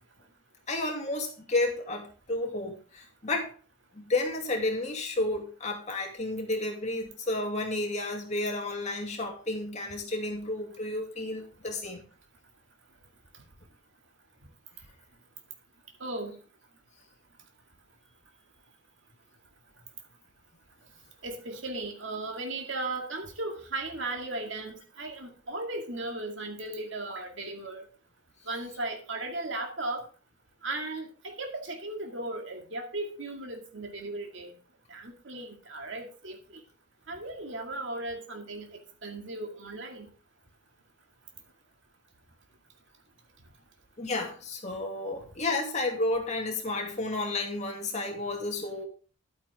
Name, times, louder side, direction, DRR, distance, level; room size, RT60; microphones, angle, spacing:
voice 1, 0.7-3.5 3.9-12.0 44.0-48.8, left 2 dB, 35° left, 2 dB, 2.5 m, -31 dB
voice 2, 16.0-16.3 21.2-27.9 28.5-30.0 30.6-34.5 34.9-36.4 37.1-38.7 39.0-40.1, right 2 dB, 60° right, 3 dB, 2.2 m, -36 dB
11.5 x 9.1 x 3.5 m, 0.37 s
head